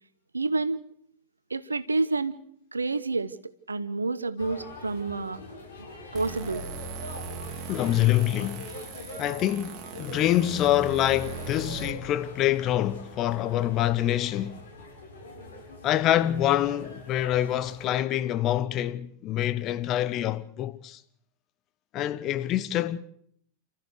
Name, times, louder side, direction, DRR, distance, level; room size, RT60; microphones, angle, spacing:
voice 1, 0.3-0.8 1.5-2.4 2.7-3.3 3.7-5.4 6.1-6.6, right 3 dB, 80° right, 0.9 m, -28 dB
sound 1, 4.4-17.9, left 2 dB, 65° left, 7.6 m, -44 dB
sound 2, 6.1-11.9, right 5 dB, 35° right, 3.1 m, -39 dB
voice 2, 7.7-8.7 9.2-14.6 15.8-21.0 21.9-23.0, left 13 dB, 35° left, 1.0 m, -26 dB
29.0 x 14.5 x 6.6 m
figure-of-eight pair, 90°, 0 cm